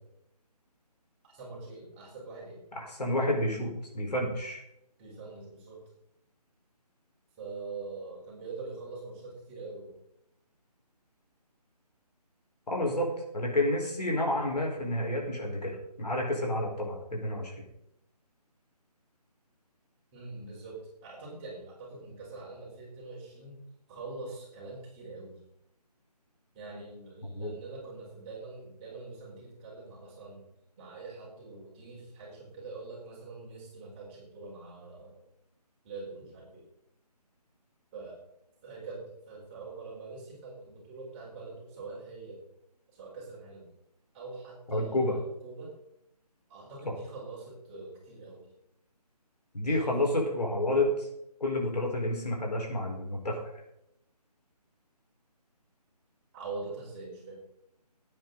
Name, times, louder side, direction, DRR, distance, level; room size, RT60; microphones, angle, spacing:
voice 1, 1.2-2.6 5.0-5.8 7.4-9.9 20.1-23.6 23.9-25.4 26.5-30.4 30.8-35.2 35.8-36.6 37.9-38.3 38.6-42.4 42.9-43.7 44.1-45.7 46.5-48.5 49.6-50.1 56.3-57.4, right 3 dB, 20° right, -4 dB, 4.5 m, -44 dB
voice 2, 2.7-4.6 12.7-13.1 13.3-17.6 27.3-27.5 44.7-45.2 49.5-51.1 51.4-53.4, left 1 dB, 75° left, 0 dB, 4.9 m, -30 dB
17.5 x 9.1 x 4.1 m, 0.78 s
figure-of-eight pair, 155°, 21 cm